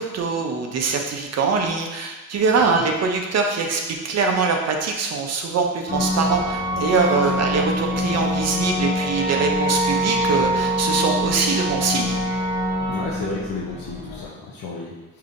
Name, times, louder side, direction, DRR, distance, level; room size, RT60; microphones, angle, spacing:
voice 1, 0.0-12.2, right 4 dB, 50° right, 2 dB, 0.5 m, -23 dB
sound 1, 5.9-14.3, equal, 30° left, 0.5 m, -24 dB
voice 2, 12.9-15.2, left 3 dB, 75° left, -5 dB, 0.6 m, -33 dB
5.0 x 2.8 x 2.5 m, 1.1 s
wide cardioid pair, 155°, 34 cm